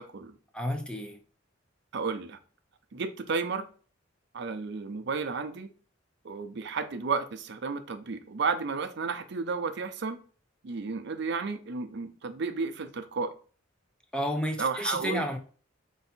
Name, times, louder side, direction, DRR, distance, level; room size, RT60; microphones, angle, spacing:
voice 1, 0.5-1.2 14.1-15.4, equal, 5° left, 0.5 m, -31 dB
voice 2, 1.9-2.4 2.9-3.7 4.3-5.7 6.2-10.2 10.6-13.3 14.6-15.2, right 4 dB, 60° right, 0.5 m, -32 dB
4.4 x 2.7 x 4.2 m
head